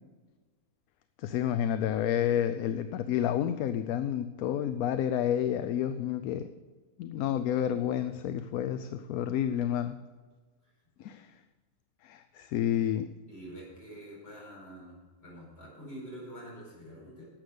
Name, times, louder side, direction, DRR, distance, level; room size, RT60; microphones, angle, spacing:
voice 1, 1.2-6.5 7.0-10.0 11.0-11.3 12.0-13.1, left 10 dB, 70° left, 11 dB, 1.0 m, -30 dB
voice 2, 13.3-17.3, right 1 dB, 40° left, -5 dB, 5.2 m, -46 dB
12.0 x 8.1 x 6.5 m, 1.4 s
omnidirectional pair, 1.7 m